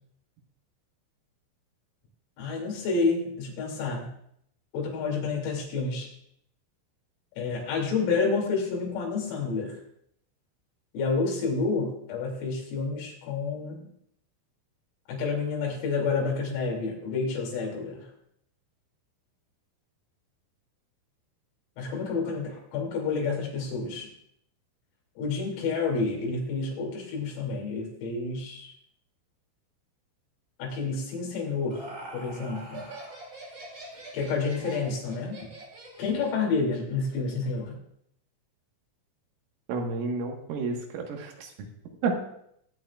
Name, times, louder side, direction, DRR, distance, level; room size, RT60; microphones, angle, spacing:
voice 1, 2.4-4.1 4.7-6.1 7.4-9.8 10.9-13.9 15.1-18.1 21.8-24.1 25.2-28.7 30.6-32.9 34.1-35.4 36.0-37.8, left 4 dB, 85° left, -1 dB, 5.5 m, -29 dB
Laughter, 31.3-36.4, right 2 dB, 25° right, 2.8 m, -44 dB
voice 2, 39.7-41.5 42.0-42.2, right 4 dB, 80° right, 1 dB, 4.1 m, -30 dB
21.0 x 9.1 x 2.4 m, 0.71 s
omnidirectional pair, 5.9 m